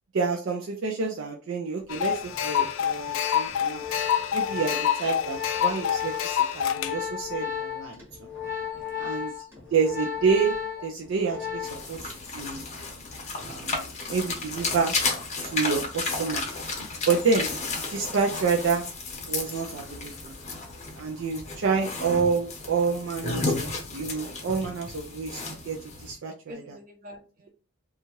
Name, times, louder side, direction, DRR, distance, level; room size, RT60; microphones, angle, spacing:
voice 1, 0.1-3.8 4.3-8.0 9.0-9.3 9.7-10.6 10.8-12.6 13.4-15.0 15.4-16.4 17.1-18.9 19.3-20.3 20.9-26.6, right 5 dB, 65° right, 0 dB, 0.4 m, -28 dB
sound 1, 1.9-6.9, left 9 dB, 75° left, 0.3 m, -27 dB
Organ, 2.0-12.0 12.3-12.6, left 8 dB, 10° right, 1.0 m, -34 dB
voice 2, 8.5-9.4 10.8-10.9 11.7-11.8 26.4-27.5, equal, 40° right, 1 dB, 0.8 m, -48 dB
sound 2, 11.6-26.1, left 3 dB, 35° left, 0.7 m, -33 dB
2.7 x 2.3 x 2.9 m, 0.36 s
head